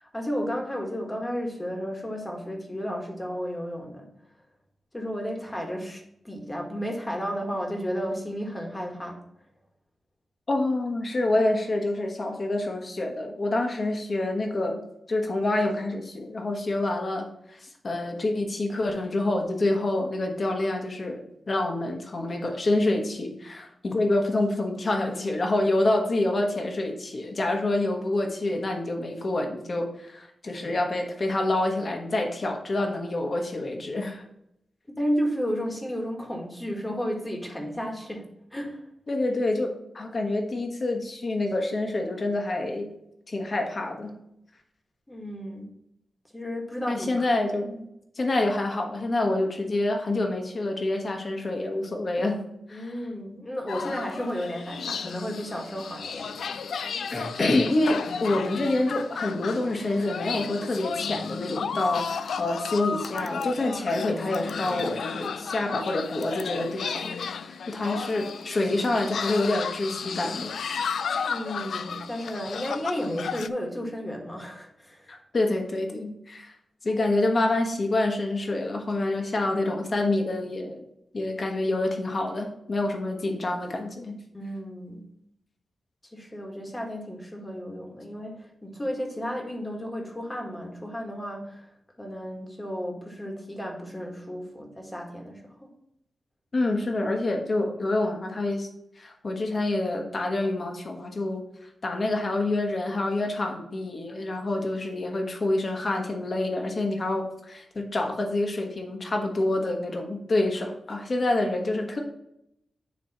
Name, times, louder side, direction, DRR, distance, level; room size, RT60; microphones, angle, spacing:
voice 1, 0.0-4.1 4.9-9.2 34.9-38.8 45.1-45.7 46.3-47.3 52.7-56.3 71.2-75.1 84.3-85.0 86.1-91.7 92.0-95.7, equal, 15° left, 1 dB, 1.6 m, -33 dB
voice 2, 10.5-14.8 15.1-21.2 21.5-34.2 39.1-42.9 43.3-44.1 46.9-47.9 48.2-52.4 52.7-52.9 57.1-70.5 75.1-76.5 76.8-80.8 81.1-84.2 96.5-98.7 99.0-101.4 101.8-112.0, left 2 dB, 45° left, 3 dB, 1.3 m, -27 dB
sound 1, 53.7-73.5, left 6 dB, 85° left, 0.4 m, -33 dB
9.6 x 3.3 x 4.2 m, 0.78 s
wide cardioid pair, 100°, 0 cm